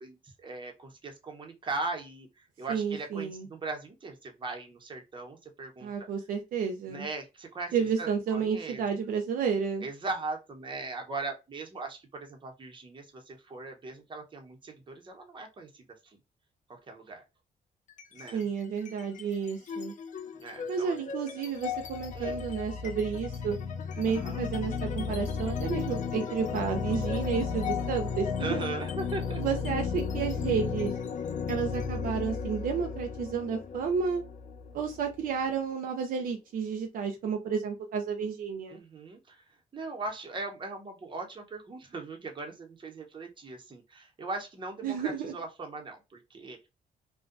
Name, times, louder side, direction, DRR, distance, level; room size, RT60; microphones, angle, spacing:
voice 1, 0.0-6.1 6.9-8.8 9.8-16.2 16.7-17.2 18.1-18.4 20.3-20.9 22.2-22.4 24.1-24.4 28.4-29.4 38.7-39.4 39.7-46.6, right 3 dB, 30° right, 0.8 m, -39 dB
voice 2, 2.7-3.5 5.8-7.1 7.7-9.9 18.3-19.9 20.7-23.6 24.0-28.6 29.4-30.9 31.5-34.2 34.7-38.8 44.8-45.4, right 6 dB, 70° right, 0.5 m, -31 dB
sound 1, 17.9-18.4 18.8-35.4, left 6 dB, 55° left, 0.4 m, -34 dB
2.5 x 2.2 x 2.4 m
cardioid pair, 95°, 15 cm